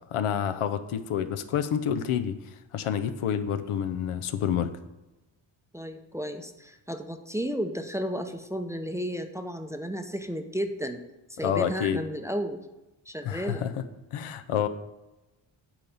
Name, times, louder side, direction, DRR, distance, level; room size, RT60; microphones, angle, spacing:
voice 1, 0.1-2.4 2.7-4.7 11.4-12.0 13.2-13.8 14.1-14.7, left 9 dB, 90° left, 11 dB, 0.8 m, -28 dB
voice 2, 5.7-11.0 11.3-12.6 13.1-13.6, equal, 5° right, 6 dB, 0.5 m, -33 dB
8.9 x 4.0 x 7.1 m, 1.0 s
cardioid pair, 110°, 49 cm